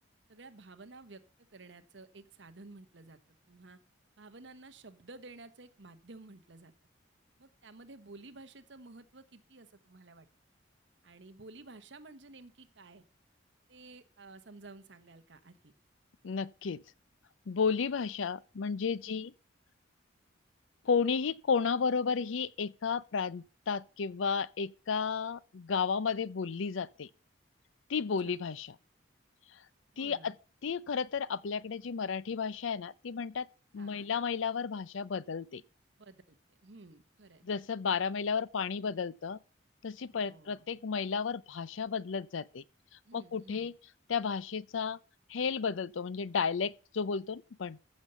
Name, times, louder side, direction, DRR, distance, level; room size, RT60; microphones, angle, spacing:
voice 1, 0.3-1.2 1.5-3.2 3.5-3.8 4.2-6.7 7.4-10.3 11.0-13.0 13.7-15.7 19.0-19.3 28.2-28.4 29.9-30.3 33.7-34.1 36.0-37.4 40.1-40.6 43.0-43.7, right 3 dB, 70° right, 1.1 m, -53 dB
voice 2, 16.2-16.8 17.5-19.3 20.8-27.1 27.9-28.7 30.0-30.3 30.6-33.5 33.7-35.6 37.4-39.4 39.8-42.6 43.1-43.7 44.1-45.0 45.3-47.8, left 5 dB, 85° left, 0.5 m, -33 dB
14.5 x 5.3 x 6.8 m
head